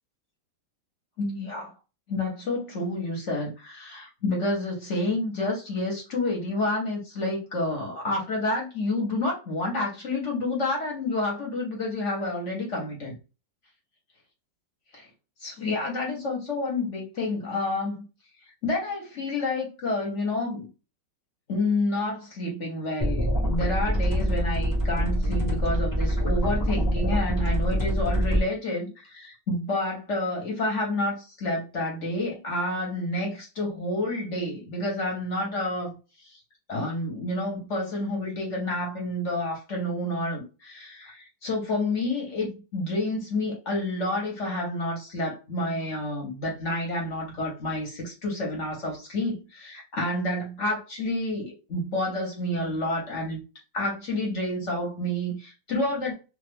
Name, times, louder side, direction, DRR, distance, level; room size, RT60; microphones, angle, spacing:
voice 1, 1.2-1.7 2.1-13.1 14.9-15.1 15.4-18.0 18.6-20.7 21.5-36.4 36.7-53.4 53.7-56.1, left 2 dB, 50° left, 1.1 m, -29 dB
sound 1, 23.0-28.4, equal, 30° left, 0.3 m, -25 dB
2.8 x 2.4 x 3.3 m
omnidirectional pair, 2.0 m